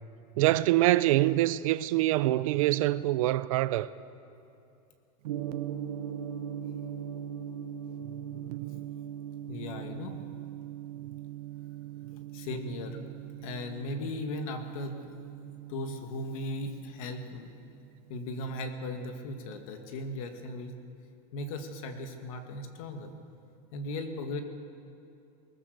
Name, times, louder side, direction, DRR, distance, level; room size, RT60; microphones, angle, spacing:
voice 1, 0.4-3.9 8.5-8.6, right 16 dB, 55° right, 0.6 m, -25 dB
Gong, 5.2-19.4, right 10 dB, 80° right, 0.9 m, -41 dB
voice 2, 9.5-10.2 12.3-13.0 13.4-15.0 15.7-17.5 18.1-20.7 21.3-23.1 23.7-24.4, left 1 dB, 60° left, 2.2 m, -37 dB
22.0 x 19.0 x 6.8 m
supercardioid pair, 180°, 20 cm